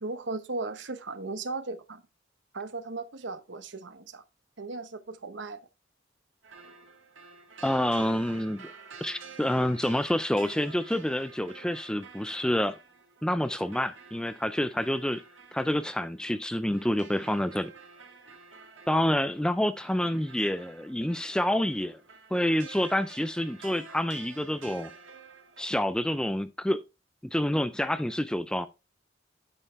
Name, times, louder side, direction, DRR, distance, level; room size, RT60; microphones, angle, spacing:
voice 1, 0.0-2.0 2.5-4.2 4.6-5.6, right 3 dB, 70° right, 0.9 m, -36 dB
sound 1, 6.4-25.6, right 5 dB, 90° right, 1.6 m, -50 dB
voice 2, 7.6-8.7 9.0-12.8 13.2-15.2 15.5-17.7 18.9-22.0 22.3-24.9 25.6-26.8 27.3-28.7, left 1 dB, 5° left, 0.3 m, -28 dB
8.9 x 6.5 x 3.3 m
head